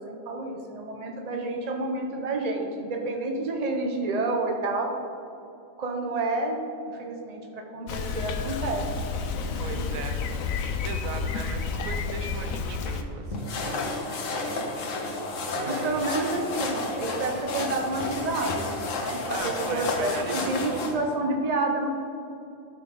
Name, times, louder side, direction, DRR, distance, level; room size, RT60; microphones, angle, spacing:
voice 1, 0.0-4.9 5.8-8.8 9.4-10.0 15.6-18.6 19.0-21.9, right 2 dB, 35° right, 1 dB, 1.0 m, -29 dB
Bicycle, 7.9-13.0, left 5 dB, 85° left, 1.1 m, -30 dB
voice 2, 9.6-10.2 10.5-14.1 15.5-16.0 19.3-21.1, right 5 dB, 90° right, 6 dB, 1.2 m, -38 dB
sound 1, 13.3-20.9, left 2 dB, 70° left, 1.4 m, -31 dB
12.5 x 6.3 x 3.8 m, 2.7 s
omnidirectional pair, 1.4 m